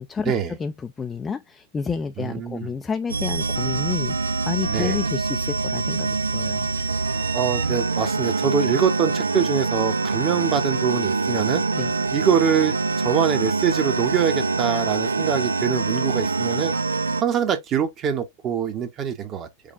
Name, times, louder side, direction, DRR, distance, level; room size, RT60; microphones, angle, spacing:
voice 1, 0.0-6.7 11.7-11.9, left 5 dB, 15° left, 0.4 m, -30 dB
voice 2, 2.2-2.7 4.7-5.0 7.3-11.6 12.1-16.7 17.2-19.5, right 8 dB, 30° right, 1.0 m, -24 dB
sound 1, 3.1-17.2, right 4 dB, 80° right, 0.4 m, -24 dB
5.1 x 2.4 x 3.6 m
figure-of-eight pair, 90°, 0 cm